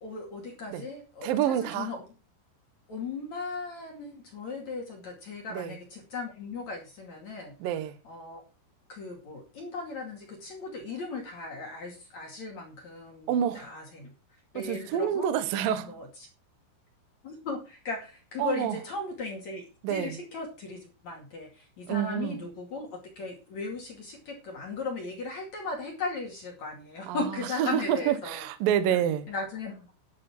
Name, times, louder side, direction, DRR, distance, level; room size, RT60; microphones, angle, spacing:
voice 1, 0.0-2.0 2.9-7.5 8.0-8.4 8.9-14.1 14.5-15.3 15.8-16.1 17.2-22.9 23.2-28.5 28.9-29.0 29.3-29.9, left 3 dB, 45° left, 2.8 m, -37 dB
voice 2, 1.2-1.9 5.5-5.7 7.6-8.0 13.3-13.7 14.6-16.0 18.4-18.8 19.8-20.2 21.9-22.4 27.1-29.3, right 10 dB, 90° right, 2.0 m, -28 dB
11.0 x 11.0 x 4.4 m
omnidirectional pair, 5.9 m